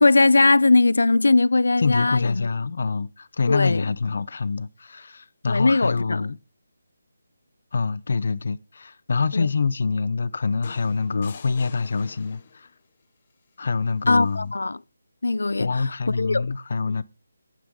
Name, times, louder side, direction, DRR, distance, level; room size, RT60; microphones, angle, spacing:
voice 1, 0.0-2.5 3.5-3.8 5.5-6.2 9.3-9.5 14.1-14.8 15.2-16.4, left 3 dB, 90° left, 0.6 m, -20 dB
voice 2, 1.8-6.4 7.7-12.7 13.6-14.5 15.6-17.0, left 4 dB, 50° left, 0.8 m, -25 dB
sound 1, 10.6-12.8 14.2-14.4, left 7 dB, 30° left, 1.0 m, -47 dB
11.0 x 9.3 x 5.3 m
hypercardioid pair, 175°, 0 cm